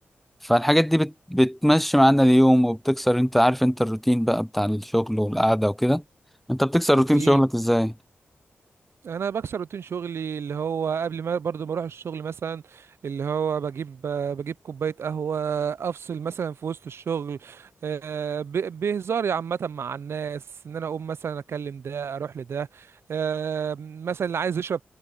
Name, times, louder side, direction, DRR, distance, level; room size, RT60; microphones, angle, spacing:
voice 1, 0.4-6.0 6.5-7.9, equal, 5° left, 0.5 m, -20 dB
voice 2, 6.9-7.4 9.0-24.8, right 7 dB, 70° right, 0.4 m, -30 dB
cardioid pair, 60°, 4 cm